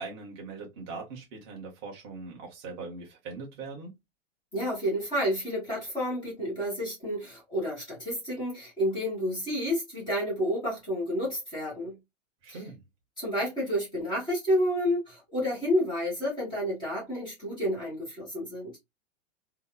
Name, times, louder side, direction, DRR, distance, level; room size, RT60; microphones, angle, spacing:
voice 1, 0.0-3.9 12.4-12.8, right 4 dB, 20° right, 0.7 m, -41 dB
voice 2, 4.5-12.0 12.5-12.6 13.2-18.8, equal, 10° left, 1.9 m, -30 dB
3.4 x 2.7 x 2.2 m
supercardioid pair, 175°, 39 cm